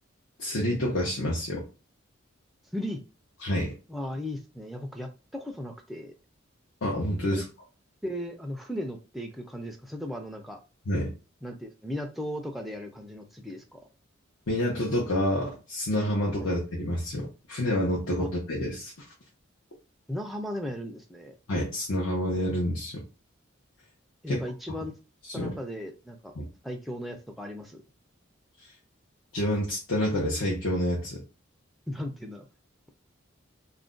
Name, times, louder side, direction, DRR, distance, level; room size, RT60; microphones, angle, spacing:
voice 1, 0.4-1.6 3.4-3.7 6.8-7.4 10.9-11.1 14.5-18.9 21.5-23.0 24.3-24.4 25.3-25.5 26.4-26.5 29.3-31.2, left 1 dB, 80° left, -4 dB, 0.8 m, -28 dB
voice 2, 3.9-6.1 7.3-7.4 8.0-10.6 11.4-13.8 16.4-16.5 18.2-18.3 20.1-21.3 24.2-24.9 25.3-26.3 26.6-27.8 31.9-32.5, left 1 dB, ahead, 2 dB, 0.3 m, -36 dB
2.4 x 2.1 x 3.7 m, 0.32 s
head